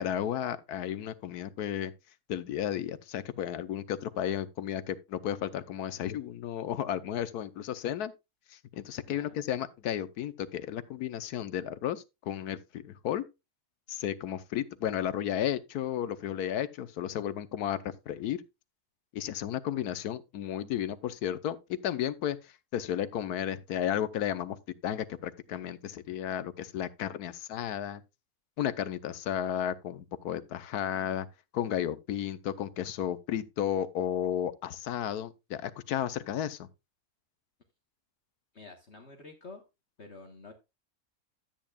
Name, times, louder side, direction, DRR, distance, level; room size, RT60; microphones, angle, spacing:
voice 1, 0.0-1.9 2.3-8.1 8.5-13.2 13.9-18.4 19.1-24.6 24.8-28.0 28.6-31.3 31.5-36.7, left 10 dB, 85° left, 1.3 m, -33 dB
voice 2, 9.1-9.4 38.5-39.6 40.0-40.5, left 3 dB, 45° left, 1.5 m, -48 dB
13.0 x 8.7 x 2.3 m
omnidirectional pair, 1.6 m